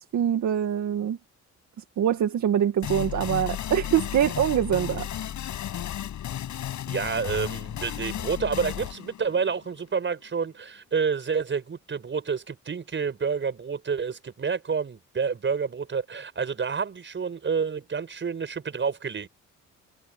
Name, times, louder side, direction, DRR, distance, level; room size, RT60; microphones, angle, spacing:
voice 1, 0.1-1.2 2.0-5.1, right 10 dB, 70° right, 2.2 m, -24 dB
sound 1, 2.8-10.3, left 11 dB, 70° left, 6.6 m, -34 dB
voice 2, 6.9-19.3, right 6 dB, 40° right, 5.9 m, -29 dB
cardioid pair, 90°, 30 cm